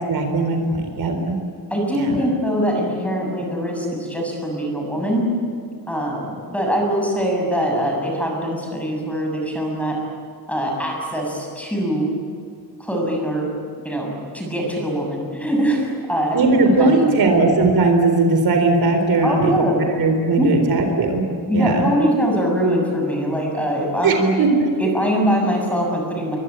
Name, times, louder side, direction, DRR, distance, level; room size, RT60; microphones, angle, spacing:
voice 1, 0.1-1.4 1.9-2.2 16.3-19.5 20.0-21.3 21.5-21.9 24.0-24.7, right 3 dB, 60° right, 5 dB, 4.1 m, -18 dB
voice 2, 1.7-5.3 5.9-10.0 10.5-12.1 12.8-13.5 13.8-16.4 16.8-17.3 19.2-19.8 20.4-20.5 21.5-24.4 24.8-26.4, equal, 5° left, 0 dB, 7.1 m, -22 dB
28.0 x 23.5 x 9.0 m, 2.3 s
wide cardioid pair, 165°, 41 cm